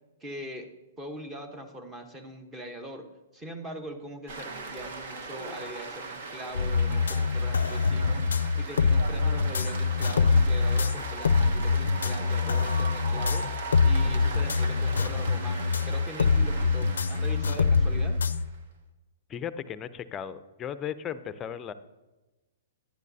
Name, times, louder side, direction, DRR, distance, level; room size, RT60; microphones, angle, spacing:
voice 1, 0.2-0.7 1.0-3.1 3.3-8.2 8.5-13.5 13.8-18.2, equal, 15° right, 7 dB, 1.0 m, -41 dB
sound 1, 4.3-18.6, right 3 dB, 65° right, 1.2 m, -39 dB
sound 2, 6.5-18.5, left 4 dB, 90° left, 0.4 m, -25 dB
voice 2, 19.3-21.7, left 9 dB, 20° left, 13 dB, 0.5 m, -36 dB
10.5 x 10.0 x 2.7 m, 1.1 s
hypercardioid pair, 135°, 0 cm